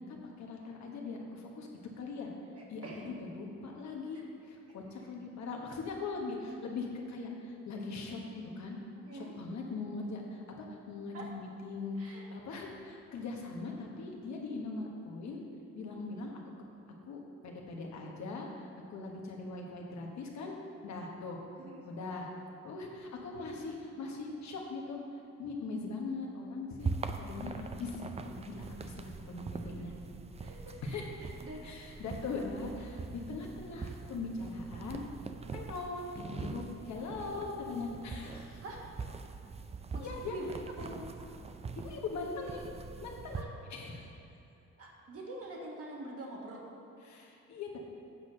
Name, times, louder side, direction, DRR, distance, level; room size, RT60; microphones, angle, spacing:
voice 1, 0.1-1.7 2.0-2.3 2.7-8.8 9.1-15.4 15.7-16.3 17.1-20.5 20.8-21.4 21.8-22.3 22.6-25.0 25.4-26.9 27.2-29.9 30.8-31.1 31.6-35.0 35.5-38.6 40.0-40.3 41.8-44.1 47.0-47.7, left 3 dB, 65° left, 0 dB, 1.3 m, -41 dB
voice 2, 2.5-3.2 4.1-4.2 4.7-4.8 9.1-9.4 11.1-11.3 12.0-12.3 21.6-22.0 30.4-31.7 38.6-38.8 39.9-41.0 43.3-43.5 44.8-46.6, right 1 dB, 50° right, -2 dB, 1.6 m, -45 dB
sound 1, 26.8-43.4, right 4 dB, 20° right, 0.4 m, -43 dB
8.3 x 4.2 x 6.3 m, 2.9 s
cardioid pair, 90°, 30 cm